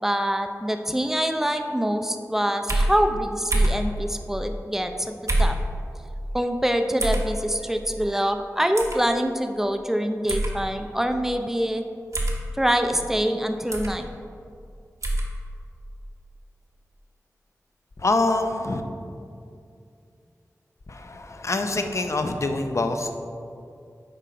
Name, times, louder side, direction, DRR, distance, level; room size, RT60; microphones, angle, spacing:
voice 1, 0.0-5.1 5.4-5.6 6.3-11.8 12.6-14.1, equal, 5° right, 6 dB, 0.5 m, -25 dB
sound 1, 2.7-2.9 3.5-3.8 5.3-5.6 7.0-7.3 8.8-9.0 10.3-10.5 12.1-12.4 13.7-13.9 15.0-15.3, right 1 dB, 60° right, 1.1 m, -23 dB
voice 2, 18.0-18.8 20.9-23.1, left 2 dB, 55° left, 6 dB, 0.6 m, -25 dB
7.7 x 4.4 x 5.1 m, 2.5 s
wide cardioid pair, 55°, 6 cm